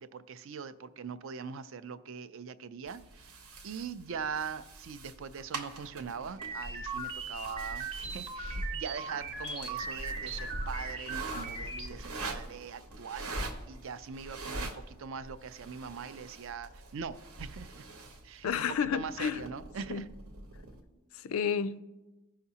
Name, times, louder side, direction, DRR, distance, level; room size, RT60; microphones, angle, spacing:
voice 1, 0.0-3.3 3.6-17.8 18.2-20.1, right 6 dB, 60° right, 13 dB, 0.4 m, -42 dB
sound 1, 2.9-20.8, right 1 dB, 85° right, 1.0 m, -43 dB
sound 2, 6.4-11.9, right 4 dB, 25° right, 0.8 m, -39 dB
voice 2, 18.4-19.4 19.9-20.1 21.3-21.8, left 7 dB, 75° left, 14 dB, 0.4 m, -30 dB
15.0 x 5.8 x 2.8 m, 1.1 s
head